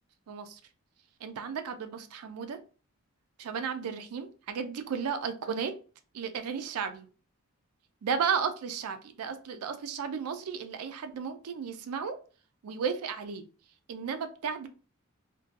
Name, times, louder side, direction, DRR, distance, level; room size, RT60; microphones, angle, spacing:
voice 1, 0.3-0.6 1.2-2.6 3.4-5.7 6.1-7.1 8.0-12.2 12.6-13.4 13.9-14.7, right 6 dB, 85° right, 8 dB, 0.4 m, -34 dB
2.6 x 2.2 x 2.4 m, 0.37 s
head